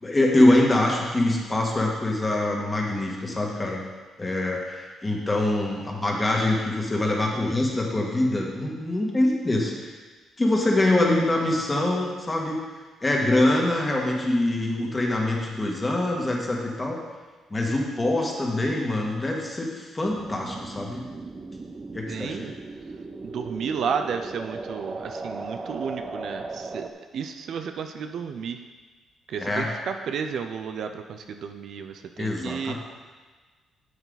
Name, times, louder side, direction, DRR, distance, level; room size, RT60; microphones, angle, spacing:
voice 1, 0.0-3.8 4.2-9.9 10.4-12.6 13.0-17.0 17.5-21.1 21.9-22.5 29.4-29.7 32.2-32.7, left 1 dB, 20° left, -1 dB, 1.9 m, -24 dB
sound 1, 20.0-26.9, right 3 dB, 30° right, 0.8 m, -37 dB
voice 2, 22.1-22.5 23.2-26.9 27.1-28.6 29.3-32.7, right 6 dB, 65° right, 7 dB, 0.6 m, -32 dB
9.8 x 7.0 x 4.0 m, 1.4 s
cardioid pair, 90°, 0 cm